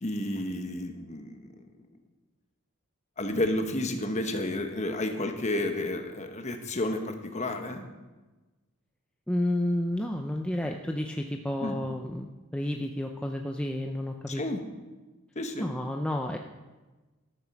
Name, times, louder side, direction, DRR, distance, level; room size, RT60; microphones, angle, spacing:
voice 1, 0.0-1.5 3.2-7.9 11.6-11.8 14.3-14.6 15.3-15.7, left 1 dB, 30° left, 5 dB, 1.2 m, -31 dB
voice 2, 9.3-14.4 15.6-16.4, left 1 dB, 5° left, 2 dB, 0.5 m, -31 dB
13.0 x 7.4 x 6.0 m, 1.2 s
head